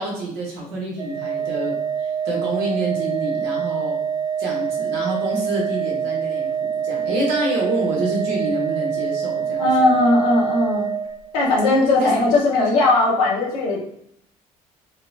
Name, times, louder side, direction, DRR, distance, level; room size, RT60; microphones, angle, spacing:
voice 1, 0.0-4.0 4.4-9.7 12.0-12.1, right 1 dB, 70° right, -3 dB, 1.2 m, -27 dB
Organ, 1.0-11.7, right 7 dB, 20° right, 0.3 m, -25 dB
voice 2, 9.6-10.9 11.3-13.8, left 2 dB, 80° left, -5 dB, 1.1 m, -18 dB
3.6 x 2.1 x 2.6 m, 0.74 s
hypercardioid pair, 55°, 19 cm